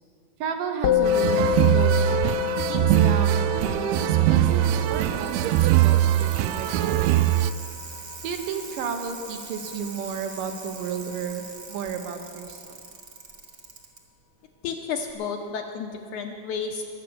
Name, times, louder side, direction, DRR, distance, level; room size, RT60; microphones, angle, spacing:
voice 1, 0.4-2.2 2.7-7.5 8.2-12.8, right 6 dB, 70° right, 6 dB, 2.6 m, -33 dB
Musical instrument, 0.8-10.4, left 12 dB, 90° left, 2.6 m, -29 dB
sound 1, 1.0-7.5, right 13 dB, 90° right, 2.5 m, -21 dB
Bicycle, 4.4-14.0 15.1-15.2, right 4 dB, 40° right, 1.7 m, -42 dB
voice 2, 14.6-16.8, left 6 dB, 75° left, 3 dB, 2.0 m, -31 dB
22.0 x 8.6 x 7.0 m, 2.3 s
omnidirectional pair, 4.3 m